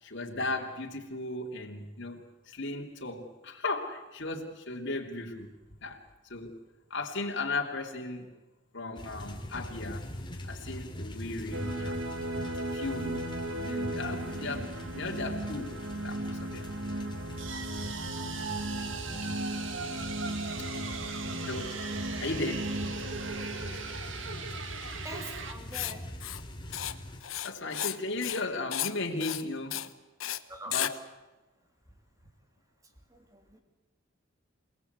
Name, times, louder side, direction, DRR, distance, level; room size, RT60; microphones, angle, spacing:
voice 1, 0.0-5.5 5.8-6.0 6.3-6.6 6.9-8.3 8.7-10.1 10.4-12.0 12.7-13.1 13.5-15.7 16.0-16.7 21.4-21.7 22.2-22.7 27.4-29.8 30.6-30.9, left 2 dB, 60° left, 0 dB, 3.1 m, -36 dB
sound 1, 9.0-27.2, left 1 dB, 25° left, 2.9 m, -42 dB
sound 2, 11.5-25.5, right 2 dB, 70° right, 2.1 m, -36 dB
voice 2, 25.0-26.1 30.5-30.8 33.1-33.6, right 1 dB, 15° right, 5 dB, 3.0 m, -44 dB
Writing, 25.7-25.9 26.2-26.4 26.7-26.9 27.2-28.0 28.2-28.4 28.7-28.9 29.2-29.4 29.7-29.9 30.2-30.4 30.7-30.9, left 12 dB, 90° left, 1.1 m, -33 dB
28.0 x 19.0 x 8.2 m, 1.1 s
head